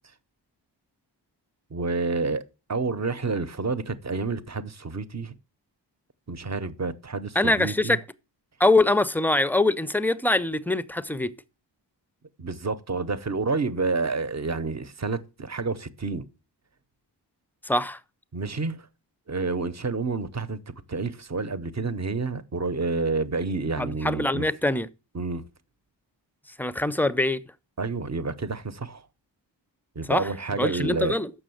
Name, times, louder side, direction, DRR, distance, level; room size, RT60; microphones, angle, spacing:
voice 1, 1.7-5.3 6.3-8.0 12.4-16.3 18.3-18.9 19.3-24.5 25.1-25.5 27.8-29.0 30.0-31.2, right 4 dB, 40° right, 0.8 m, -29 dB
voice 2, 7.4-8.0 8.6-11.3 17.6-18.0 23.8-24.9 26.6-27.4 30.1-30.3 30.6-31.3, left 2 dB, 5° left, 0.4 m, -23 dB
7.0 x 6.2 x 7.7 m
wide cardioid pair, 120°, 43 cm